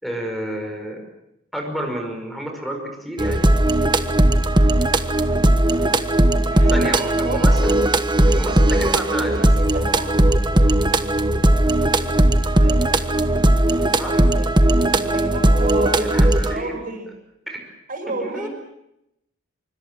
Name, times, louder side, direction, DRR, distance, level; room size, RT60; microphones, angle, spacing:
voice 1, 0.0-1.0 1.5-3.5 6.7-7.8 8.3-9.5 14.0-14.2 15.0-15.2 16.0-16.8 17.5-17.6 18.2-18.5, equal, ahead, 3 dB, 5.4 m, -30 dB
sound 1, 3.2-16.6, right 1 dB, 25° right, 1.3 m, -17 dB
voice 2, 6.5-6.9 7.2-7.8 8.4-8.8 9.4-10.1 12.4-13.1 13.7-16.2 16.5-17.1 17.9-18.5, right 2 dB, 45° right, 5 dB, 5.8 m, -31 dB
26.0 x 24.0 x 7.6 m, 0.84 s
head